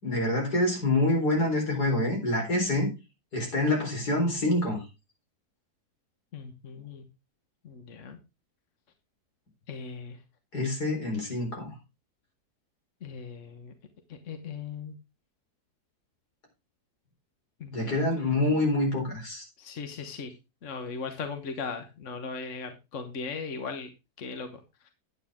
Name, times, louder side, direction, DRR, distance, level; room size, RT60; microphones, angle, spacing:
voice 1, 0.0-2.9 3.3-4.8 10.5-11.7 17.7-19.4, left 1 dB, 75° left, 0 dB, 4.8 m, -26 dB
voice 2, 6.3-7.0 7.6-8.2 9.7-10.2 13.0-13.7 14.1-14.9 17.6-18.3 19.6-20.3 20.6-23.9 24.2-24.9, left 5 dB, 50° left, 7 dB, 1.4 m, -38 dB
10.0 x 9.0 x 3.6 m, 0.27 s
omnidirectional pair, 1.7 m